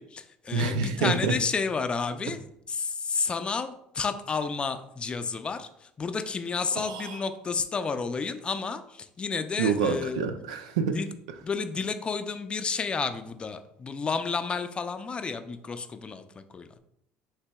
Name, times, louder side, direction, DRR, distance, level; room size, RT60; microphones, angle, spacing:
voice 1, 0.0-2.4 2.7-10.2 10.9-11.1 11.4-16.7, left 5 dB, 30° left, 9 dB, 0.4 m, -31 dB
voice 2, 0.5-1.3 6.8-7.2 9.6-11.0, right 5 dB, 90° right, 8 dB, 0.4 m, -27 dB
5.6 x 3.3 x 2.3 m, 0.74 s
supercardioid pair, 80°, 3 cm